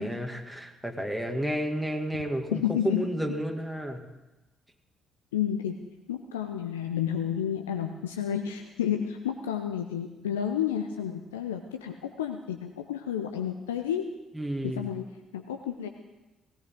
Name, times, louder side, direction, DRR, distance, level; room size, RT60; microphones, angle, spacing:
voice 1, 0.0-4.0 14.3-14.9, right 1 dB, ahead, 2 dB, 2.2 m, -31 dB
voice 2, 2.5-3.4 5.3-5.8 6.1-14.1 14.6-15.0 15.3-15.9, left 9 dB, 80° left, 5 dB, 0.7 m, -31 dB
18.5 x 16.5 x 3.8 m, 1.1 s
figure-of-eight pair, 45°, 0 cm